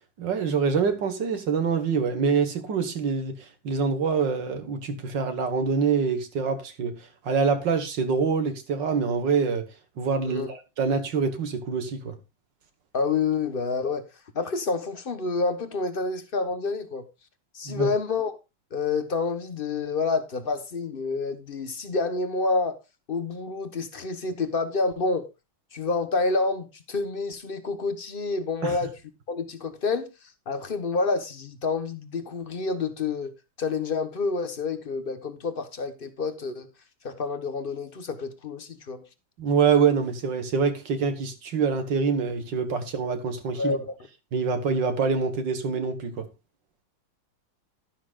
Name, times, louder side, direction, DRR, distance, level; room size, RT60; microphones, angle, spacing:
voice 1, 0.2-7.0 7.2-9.7 10.0-12.1 17.7-17.9 28.6-28.7 39.4-43.8 44.3-46.3, right 5 dB, 65° right, 2.1 m, -25 dB
voice 2, 12.9-14.1 14.3-17.1 17.5-18.3 18.7-22.8 23.1-25.3 25.7-28.9 29.3-30.1 30.5-33.3 33.6-36.7 37.0-39.0 43.5-43.9, left 4 dB, 35° left, 1.2 m, -28 dB
12.0 x 11.5 x 2.4 m
omnidirectional pair, 2.1 m